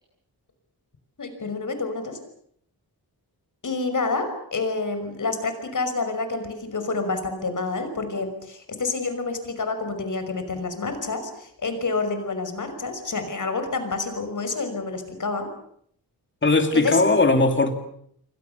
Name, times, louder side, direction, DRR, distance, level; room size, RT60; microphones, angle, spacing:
voice 1, 1.2-2.2 3.6-15.5 16.7-17.0, left 3 dB, 50° left, 8 dB, 5.8 m, -28 dB
voice 2, 16.4-17.7, left 3 dB, 30° left, 7 dB, 2.7 m, -19 dB
28.5 x 24.0 x 7.0 m, 0.69 s
wide cardioid pair, 120°, 39 cm